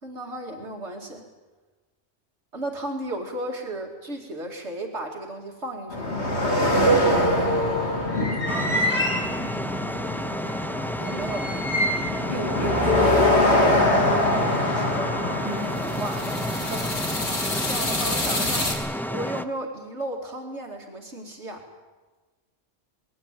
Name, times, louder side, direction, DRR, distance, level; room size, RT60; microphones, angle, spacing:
voice 1, 0.0-1.2 2.5-6.3 11.0-11.8 14.5-15.2 16.0-18.8 19.1-21.7, right 1 dB, 70° right, 1 dB, 2.7 m, -35 dB
sound 1, 5.9-18.7, left 1 dB, 65° left, 3.5 m, -24 dB
sound 2, 8.5-19.5, equal, ahead, 0.5 m, -31 dB
voice 2, 12.3-13.2 15.4-15.8, right 1 dB, 30° right, -1 dB, 3.3 m, -34 dB
21.0 x 17.5 x 9.0 m, 1.3 s
omnidirectional pair, 1.2 m